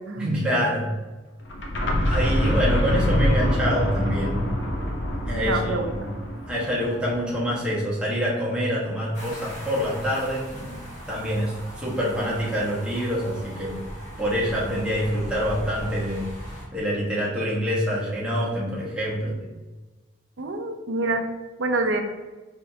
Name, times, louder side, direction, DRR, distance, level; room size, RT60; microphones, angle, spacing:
voice 1, 0.2-0.9 2.0-4.4 5.3-6.1 6.5-10.8 11.1-13.8 14.2-16.3 16.7-19.4, equal, 5° right, -7 dB, 1.2 m, -26 dB
sound 1, 1.4-7.2, left 1 dB, 70° left, 0.7 m, -25 dB
voice 2, 5.4-6.0 20.4-21.2 21.6-22.0, right 2 dB, 75° right, 4 dB, 0.6 m, -26 dB
sound 2, 9.1-16.6, equal, 40° left, 1.4 m, -38 dB
5.3 x 3.5 x 2.8 m, 1.2 s
head